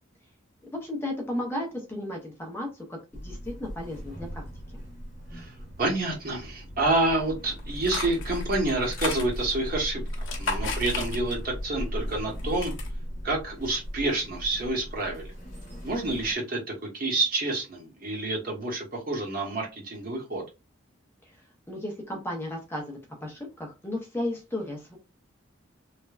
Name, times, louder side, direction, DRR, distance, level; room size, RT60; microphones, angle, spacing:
voice 1, 0.8-4.4 21.3-25.0, left 1 dB, 10° left, 0 dB, 0.5 m, -34 dB
sound 1, 3.1-16.3, equal, 40° left, 0.9 m, -37 dB
voice 2, 5.3-10.0 10.4-12.7 13.2-15.3 15.8-16.6 16.9-20.4, right 2 dB, 45° right, 0 dB, 0.8 m, -28 dB
sound 2, 7.6-9.7 10.1-11.6 11.9-12.9, left 3 dB, 60° left, 0.8 m, -35 dB
3.2 x 2.1 x 2.3 m, 0.27 s
head